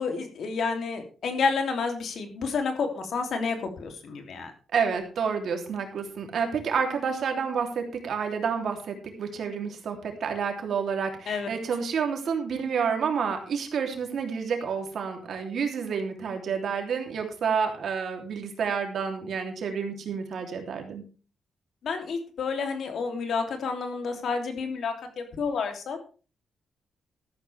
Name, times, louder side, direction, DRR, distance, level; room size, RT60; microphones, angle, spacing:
voice 1, 0.0-4.5 11.3-11.5 21.8-26.0, left 5 dB, 60° left, 5 dB, 3.0 m, -30 dB
voice 2, 4.7-21.0, right 6 dB, 55° right, 4 dB, 3.1 m, -29 dB
13.5 x 12.5 x 3.5 m, 0.35 s
wide cardioid pair, 175°, 0 cm